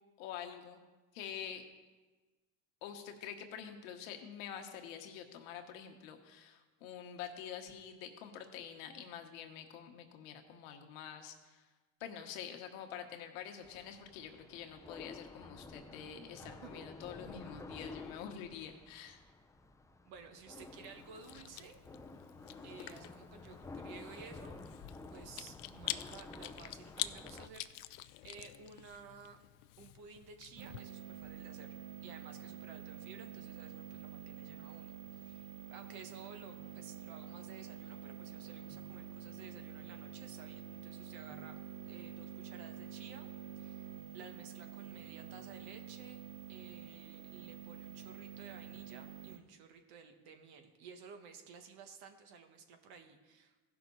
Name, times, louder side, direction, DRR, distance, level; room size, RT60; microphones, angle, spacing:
voice 1, 0.2-0.8 1.1-1.6 2.8-11.7 12.0-19.2, left 8 dB, 90° left, 5 dB, 1.3 m, -47 dB
sound 1, 13.6-27.5, left 3 dB, 10° left, 0.5 m, -51 dB
voice 2, 16.4-16.9 20.1-21.8 22.6-24.5 25.1-29.4 29.8-31.7 32.0-41.5 41.8-43.3 43.5-46.2 46.5-53.8, right 5 dB, 70° right, 6 dB, 1.5 m, -54 dB
Chewing mastication, 20.6-30.8, left 16 dB, 75° left, 0.6 m, -47 dB
sound 2, 30.6-49.4, right 9 dB, 90° right, 0.9 m, -48 dB
16.0 x 5.9 x 3.9 m, 1.2 s
supercardioid pair, 95°, 40 cm